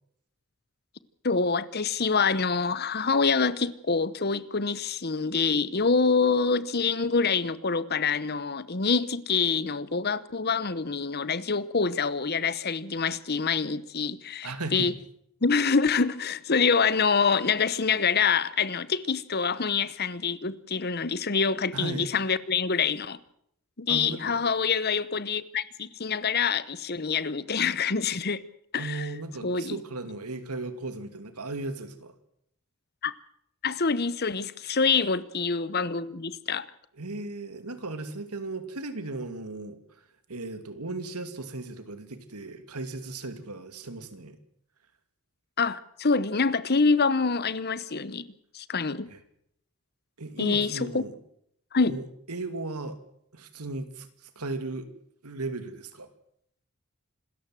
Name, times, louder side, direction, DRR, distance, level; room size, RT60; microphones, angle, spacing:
voice 1, 1.2-14.9 15.4-23.2 23.8-28.4 28.7-29.1 29.4-29.8 33.0-33.1 33.6-36.7 45.6-48.2 48.5-49.1 50.4-51.0 51.7-52.0, left 5 dB, 45° left, 1.0 m, -26 dB
voice 2, 14.4-14.9 21.7-22.1 23.9-24.4 28.8-32.1 36.9-44.4 49.1-49.2 50.2-51.2 51.9-53.0 53.3-54.9 55.2-56.1, right 2 dB, 90° right, 2.5 m, -36 dB
26.5 x 13.5 x 7.7 m
head